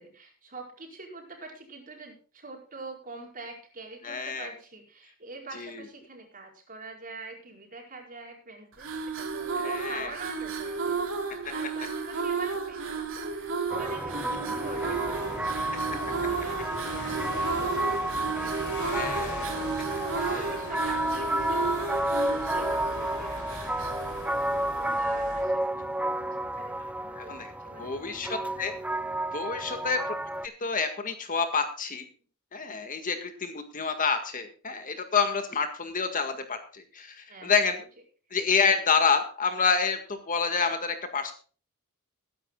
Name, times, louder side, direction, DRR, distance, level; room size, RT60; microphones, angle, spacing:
voice 1, 0.0-11.0 11.5-19.1 19.9-25.7 26.5-28.0 29.6-29.9 37.3-37.6, right 3 dB, 40° right, 1 dB, 4.9 m, -45 dB
voice 2, 4.0-4.5 5.6-5.8 9.6-10.1 14.3-14.4 18.8-19.5 20.3-20.5 27.2-27.5 27.8-28.7 29.3-30.1 30.6-32.0 32.5-37.8 38.3-41.3, left 5 dB, 40° left, 7 dB, 1.8 m, -28 dB
sound 1, 8.7-25.2, right 4 dB, 65° right, 3.0 m, -33 dB
sound 2, 13.7-30.5, right 1 dB, 5° right, 0.6 m, -31 dB
sound 3, 14.6-25.4, left 2 dB, 55° left, 4.2 m, -41 dB
21.0 x 10.5 x 2.4 m, 0.40 s
head